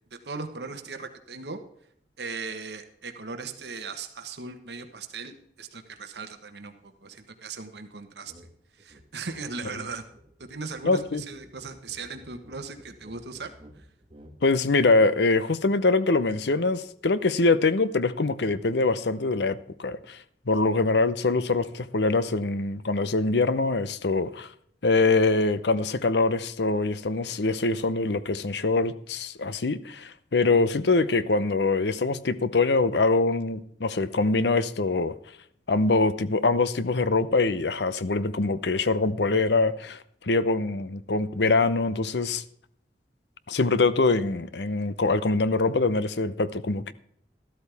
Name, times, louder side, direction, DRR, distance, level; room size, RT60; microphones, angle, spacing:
voice 1, 0.1-1.6 2.2-8.3 8.7-10.0 10.4-13.9, right 4 dB, 70° right, 1.3 m, -38 dB
sound 1, 8.3-8.5 8.8-14.4, equal, 30° right, 1.4 m, -53 dB
voice 2, 10.8-11.2 14.4-20.2 20.5-24.5 24.8-35.1 35.7-42.4 43.5-46.9, left 3 dB, 75° left, 0.7 m, -24 dB
13.0 x 12.5 x 3.5 m
head